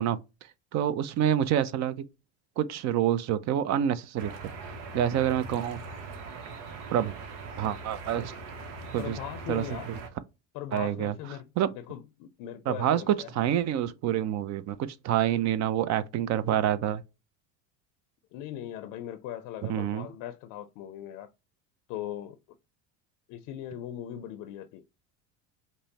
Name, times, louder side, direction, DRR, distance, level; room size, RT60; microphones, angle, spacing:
voice 1, 0.0-2.0 2.6-4.3 4.9-5.8 6.9-7.1 7.6-8.3 8.9-9.2 9.5-10.0 10.7-11.1 11.6-11.7 12.7-17.0 19.7-20.1, right 10 dB, 50° right, 0.5 m, -27 dB
sound 1, 4.2-10.1, right 3 dB, 85° right, 0.9 m, -41 dB
voice 2, 9.0-9.9 10.5-13.3 18.3-21.3 21.9-22.4 23.3-24.8, left 11 dB, 65° left, 0.5 m, -39 dB
5.3 x 2.1 x 2.8 m
supercardioid pair, 95°, 37 cm